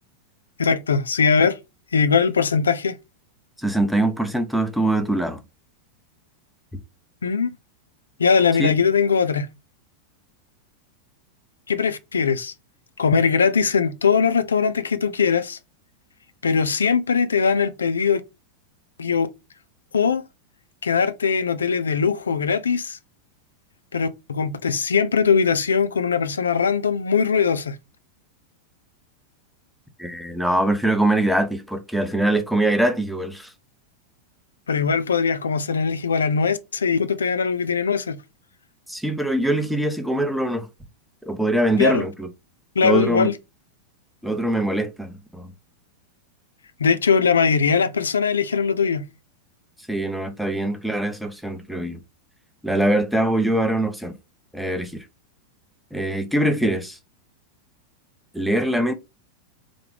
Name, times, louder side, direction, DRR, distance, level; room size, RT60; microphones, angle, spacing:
voice 1, 0.6-1.6 1.9-3.0 7.2-7.5 8.2-9.5 11.7-12.5 13.0-15.6 16.4-18.2 19.0-19.3 19.9-20.2 20.8-23.0 23.9-27.8 34.7-38.2 41.8-42.0 42.8-43.3 46.8-49.1, left 6 dB, 70° left, 0.4 m, -20 dB
voice 2, 3.6-5.4 8.6-8.7 30.0-33.5 38.9-40.7 41.2-42.3 42.8-43.3 44.2-45.5 49.9-52.0 52.6-54.1 54.5-55.0 55.9-57.0 58.3-58.9, right 1 dB, ahead, 0.7 m, -23 dB
3.6 x 3.4 x 3.3 m
figure-of-eight pair, 90°, 0 cm